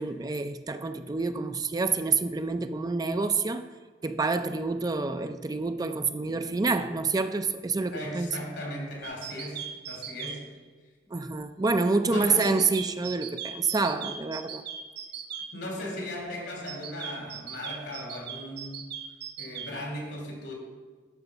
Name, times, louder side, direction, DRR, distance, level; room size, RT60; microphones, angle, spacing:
voice 1, 0.0-3.6 4.0-8.3 11.1-14.6, right 4 dB, 20° right, 9 dB, 0.4 m, -28 dB
voice 2, 7.9-10.4 12.0-12.6 15.5-18.8 19.4-20.5, left 1 dB, 80° left, 0 dB, 2.9 m, -37 dB
sound 1, 9.0-10.4 12.4-15.5 16.7-19.7, right 8 dB, 65° right, 0.9 m, -38 dB
10.5 x 4.4 x 7.0 m, 1.4 s
head